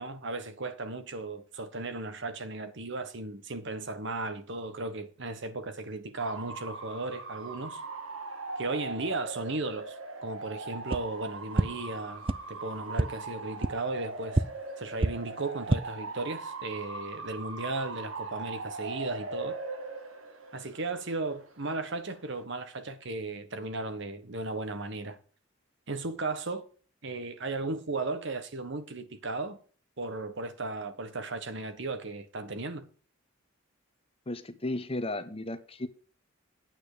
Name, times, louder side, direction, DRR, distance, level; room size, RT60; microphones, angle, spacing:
voice 1, 0.0-7.8 8.6-9.9 10.2-14.4 14.8-19.5 20.5-25.2 25.9-26.7 27.0-29.6 30.0-32.9, right 2 dB, 60° right, 1.3 m, -36 dB
Bark / Motor vehicle (road) / Siren, 6.2-22.4, right 3 dB, 85° right, 2.0 m, -40 dB
sound 1, 10.9-11.0 11.5-11.6 12.2-12.3 12.9-13.0 13.6-13.7 14.3-14.4 15.0-15.1 15.5-15.8, right 2 dB, 25° right, 0.5 m, -25 dB
voice 2, 34.3-35.9, left 2 dB, 30° left, 1.0 m, -34 dB
9.0 x 8.9 x 5.0 m
head